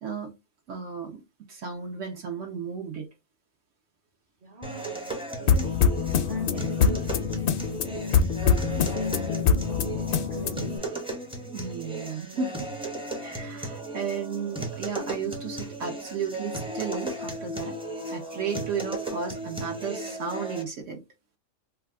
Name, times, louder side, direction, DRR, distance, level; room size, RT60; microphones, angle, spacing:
voice 1, 0.0-0.4 0.7-1.2 1.5-3.1 11.5-12.7 13.2-17.8 18.1-21.0, right 6 dB, 75° right, 1.0 m, -34 dB
voice 2, 4.4-5.1 5.3-11.0, right 1 dB, 45° right, 0.8 m, -43 dB
sound 1, 4.6-20.6, right 2 dB, 5° right, 0.5 m, -36 dB
sound 2, 5.5-10.8, left 6 dB, 65° left, 0.6 m, -24 dB
2.7 x 2.3 x 3.4 m
omnidirectional pair, 1.3 m